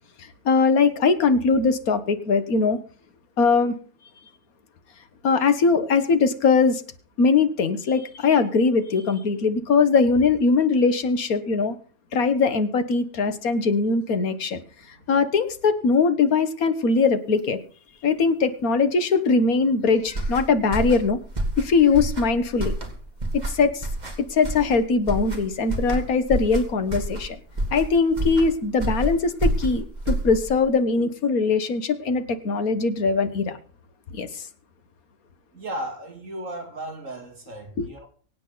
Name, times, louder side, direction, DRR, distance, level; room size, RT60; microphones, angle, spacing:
voice 1, 0.2-2.8 3.4-3.8 5.2-6.8 7.2-11.8 12.1-14.6 15.1-17.6 18.0-21.2 21.6-22.7 23.3-23.9 24.3-27.4 27.7-33.6 34.1-34.5 37.8-37.9, left 4 dB, 65° left, 1.7 m, -21 dB
sound 1, 20.1-30.7, right 1 dB, 25° right, 2.8 m, -29 dB
voice 2, 35.5-38.1, right 1 dB, 55° right, 2.8 m, -35 dB
24.0 x 8.8 x 4.0 m
omnidirectional pair, 1.6 m